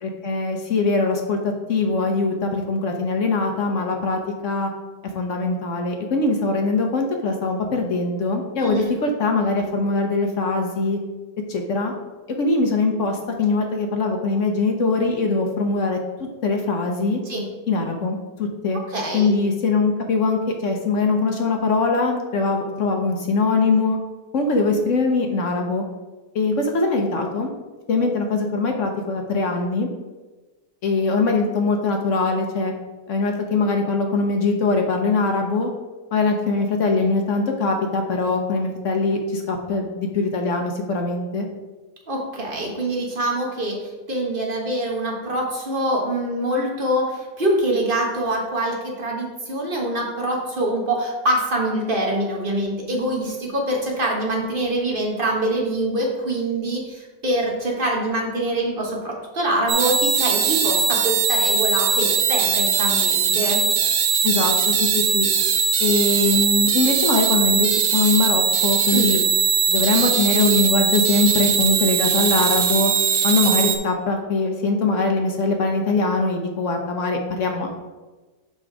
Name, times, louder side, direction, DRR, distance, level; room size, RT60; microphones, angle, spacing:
voice 1, 0.0-1.4 1.7-4.7 5.1-11.0 11.5-11.9 12.4-16.0 16.4-17.2 17.7-18.8 19.1-24.0 24.3-25.8 26.3-27.5 27.9-29.9 30.8-32.7 33.1-35.7 36.1-41.5 64.2-65.3 65.8-69.2 69.7-72.9 73.2-77.7, left 3 dB, 60° left, 3 dB, 0.8 m, -22 dB
voice 2, 18.9-19.3 42.1-63.6 68.9-69.2, right 1 dB, 30° right, -1 dB, 1.3 m, -24 dB
sound 1, 59.7-73.8, right 7 dB, 65° right, 0.8 m, -20 dB
5.7 x 5.3 x 4.7 m, 1.2 s
omnidirectional pair, 2.0 m